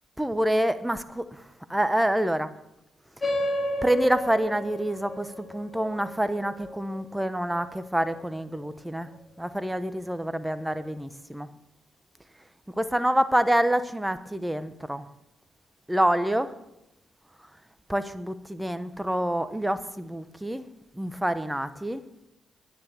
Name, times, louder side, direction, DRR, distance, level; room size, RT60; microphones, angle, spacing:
voice 1, 0.2-1.4 1.7-2.5 3.8-9.1 9.4-11.5 12.8-15.0 15.9-16.6 17.9-20.6 20.9-22.0, right 1 dB, 10° right, 12 dB, 1.0 m, -27 dB
sound 1, 3.2-8.2, left 1 dB, 30° left, 2.8 m, -33 dB
10.0 x 9.5 x 7.4 m, 0.86 s
supercardioid pair, 65°, 0 cm